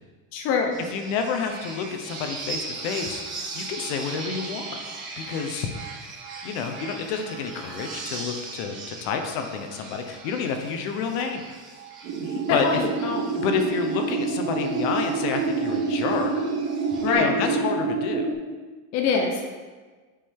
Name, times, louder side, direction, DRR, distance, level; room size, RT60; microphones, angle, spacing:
voice 1, 0.3-0.7 12.5-13.2 17.0-17.3 18.9-19.5, left 5 dB, 40° left, 1 dB, 0.7 m, -23 dB
sound 1, 0.7-17.1, right 3 dB, 30° right, 1.4 m, -39 dB
voice 2, 0.9-4.7 5.2-5.7 6.4-11.4 12.5-12.8 13.3-16.3 17.0-18.3, left 6 dB, 65° left, 5 dB, 1.0 m, -29 dB
sound 2, 12.0-18.3, right 4 dB, 45° right, 0.9 m, -27 dB
8.6 x 5.0 x 3.6 m, 1.4 s
cardioid pair, 165°, 41 cm